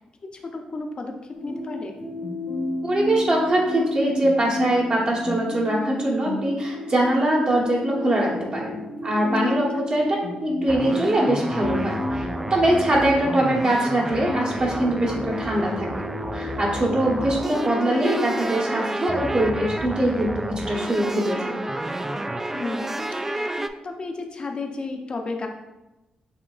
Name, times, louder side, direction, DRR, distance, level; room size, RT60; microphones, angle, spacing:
voice 1, 0.3-2.0 9.4-9.9 22.5-23.5 23.8-25.5, left 3 dB, 40° left, 4 dB, 0.7 m, -33 dB
sound 1, 1.3-18.3, left 2 dB, 70° left, 1.1 m, -32 dB
voice 2, 2.8-10.1 10.4-16.1 16.3-21.5, right 1 dB, 45° right, -3 dB, 1.2 m, -23 dB
sound 2, 10.7-23.7, right 1 dB, 15° right, 0.3 m, -30 dB
7.1 x 2.8 x 2.4 m, 1.0 s
cardioid pair, 75°, 2 cm